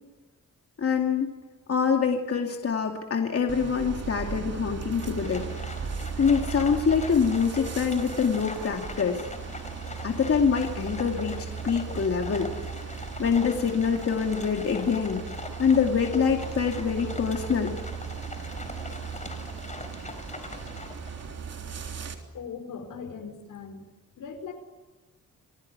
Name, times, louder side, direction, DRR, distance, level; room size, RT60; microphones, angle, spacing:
voice 1, 0.8-1.4 1.7-5.5 6.2-9.2 10.0-12.5 13.2-15.3 15.6-17.7, left 6 dB, 50° left, 3 dB, 2.5 m, -25 dB
sound 1, 3.5-22.2, right 6 dB, 50° right, 3.5 m, -37 dB
Livestock farm animals working animals, 4.9-21.3, left 2 dB, 25° left, 4.2 m, -42 dB
voice 2, 22.3-23.8 24.1-24.5, left 6 dB, 80° left, 7 dB, 5.0 m, -39 dB
29.0 x 20.0 x 9.6 m, 1.2 s
wide cardioid pair, 125°, 31 cm